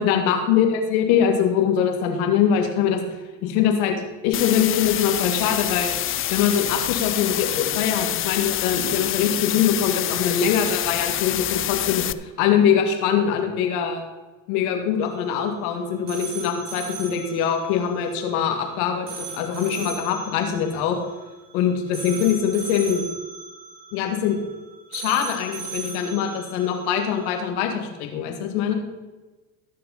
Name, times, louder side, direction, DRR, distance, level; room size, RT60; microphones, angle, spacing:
voice 1, 0.0-3.0 3.4-3.9 4.2-5.9 6.3-14.0 14.5-21.0 21.5-23.1 23.9-24.4 24.9-28.7, left 8 dB, 75° left, 5 dB, 2.1 m, -23 dB
sound 1, 4.3-12.1, left 13 dB, 30° left, 0.4 m, -26 dB
sound 2, 15.0-27.5, right 5 dB, 50° right, 2.6 m, -38 dB
18.0 x 6.7 x 4.1 m, 1.2 s
hypercardioid pair, 75°, 44 cm